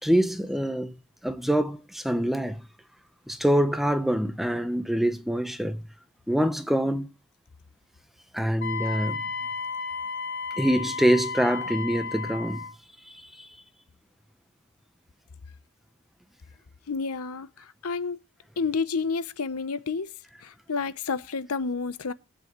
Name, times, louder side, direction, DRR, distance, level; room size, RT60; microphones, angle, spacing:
voice 1, 0.0-0.9 1.2-2.6 3.3-5.9 6.3-7.1 8.3-9.2 10.6-12.7 13.1-13.5, equal, ahead, 0.8 m, -25 dB
Wind instrument woodwind instrument, 8.6-12.7, left 5 dB, 55° left, 1.8 m, -33 dB
voice 2, 16.9-18.2 18.6-20.1 20.4-22.1, left 4 dB, 75° left, 0.7 m, -30 dB
22.0 x 8.3 x 3.0 m
head